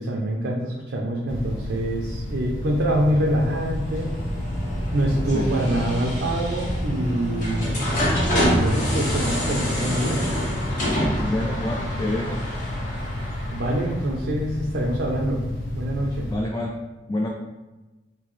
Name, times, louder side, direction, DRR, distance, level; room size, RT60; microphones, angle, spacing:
voice 1, 0.0-4.2 4.9-7.7 8.5-10.2 13.5-15.4 15.7-16.3, right 1 dB, 70° right, -2 dB, 0.5 m, -25 dB
sound 1, 1.3-16.4, left 1 dB, 75° left, 1.0 m, -32 dB
sound 2, 3.3-14.1, equal, 45° left, 1.2 m, -27 dB
voice 2, 11.3-12.4 16.3-16.8 17.1-17.3, left 1 dB, 20° left, -1 dB, 0.3 m, -27 dB
3.7 x 2.7 x 3.1 m, 1.1 s
head